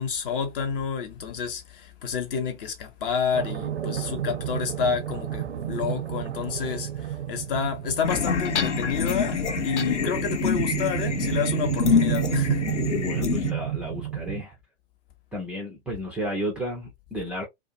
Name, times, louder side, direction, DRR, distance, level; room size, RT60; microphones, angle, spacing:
voice 1, 0.0-12.7, left 6 dB, 50° left, 0.9 m, -29 dB
sound 1, 3.3-14.4, right 12 dB, 70° right, 0.5 m, -31 dB
sound 2, 8.0-13.5, left 7 dB, 85° left, 0.5 m, -27 dB
voice 2, 12.9-14.6 15.3-17.5, equal, 5° right, 0.3 m, -32 dB
2.4 x 2.2 x 2.6 m
figure-of-eight pair, 100°, 34 cm